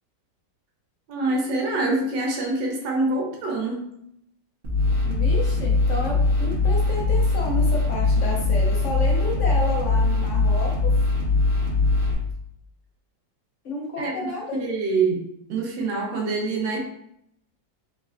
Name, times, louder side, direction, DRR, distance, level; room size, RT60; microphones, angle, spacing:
voice 1, 1.1-3.8 14.0-14.1 14.6-15.2 15.5-16.8, right 3 dB, 75° right, -1 dB, 1.5 m, -25 dB
sound 1, 4.6-12.1, left 3 dB, 35° right, 1.1 m, -21 dB
voice 2, 5.1-11.0 13.6-14.6, left 2 dB, 70° left, -1 dB, 0.7 m, -31 dB
4.5 x 3.2 x 2.4 m, 0.73 s
omnidirectional pair, 2.0 m